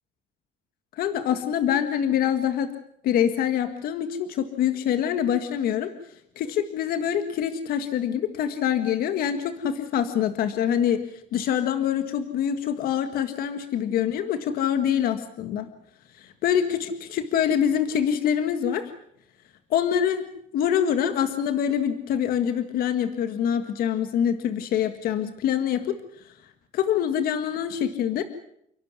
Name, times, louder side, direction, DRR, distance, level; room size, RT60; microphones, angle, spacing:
voice 1, 1.0-2.7 3.0-5.9 6.4-11.0 11.3-15.7 16.2-18.9 19.7-20.3 20.5-25.9 26.7-28.2, left 9 dB, 60° left, 9 dB, 1.7 m, -25 dB
29.5 x 12.0 x 9.6 m, 0.73 s
cardioid pair, 175°, 17 cm